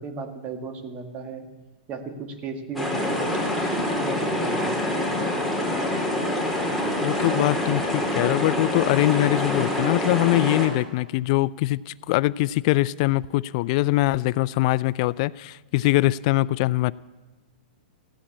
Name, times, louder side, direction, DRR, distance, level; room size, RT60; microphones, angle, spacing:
voice 1, 0.0-1.4 1.9-4.8, right 4 dB, 30° right, 5 dB, 1.9 m, -35 dB
sound 1, 2.8-10.7, left 1 dB, ahead, 2.9 m, -26 dB
voice 2, 7.0-16.9, left 18 dB, 45° left, 18 dB, 0.4 m, -23 dB
15.5 x 8.7 x 8.5 m, 1.2 s
hypercardioid pair, 140°, 5 cm